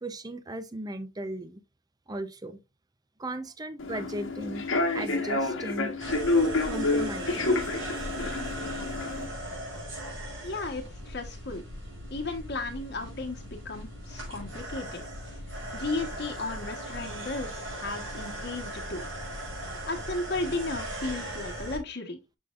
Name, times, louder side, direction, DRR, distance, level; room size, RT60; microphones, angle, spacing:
voice 1, 0.0-1.6 2.1-2.6 3.2-6.0 6.6-7.6, right 1 dB, 20° right, 0.6 m, -37 dB
Human voice / Subway metro underground, 3.8-9.3, left 2 dB, 80° left, 1.4 m, -28 dB
sound 1, 6.0-21.8, right 1 dB, 80° right, 4.4 m, -38 dB
voice 2, 10.4-11.6 12.1-15.0 15.7-19.0 19.9-22.2, left 2 dB, 55° left, 1.2 m, -34 dB
6.7 x 6.3 x 2.4 m
head